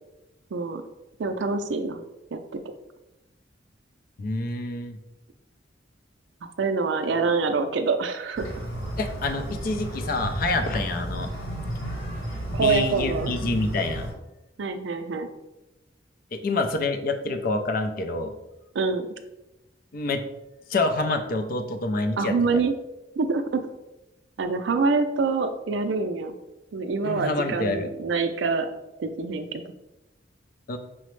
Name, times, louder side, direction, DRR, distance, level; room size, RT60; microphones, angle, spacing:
voice 1, 0.5-0.8 1.2-2.0 2.3-2.6 6.6-8.6 12.5-13.3 14.6-15.3 18.7-19.1 22.2-22.7 23.2-23.6 24.4-26.3 26.7-28.7 29.0-29.6, right 4 dB, 70° right, 7 dB, 0.4 m, -25 dB
voice 2, 4.2-5.0 9.0-11.3 12.6-14.1 16.3-18.3 19.9-20.2 20.7-22.6 27.0-27.9 30.7-30.8, left 2 dB, 50° left, 7 dB, 0.4 m, -27 dB
sound 1, 8.3-14.1, right 1 dB, 80° left, 1.3 m, -33 dB
5.7 x 2.1 x 3.1 m, 0.95 s
head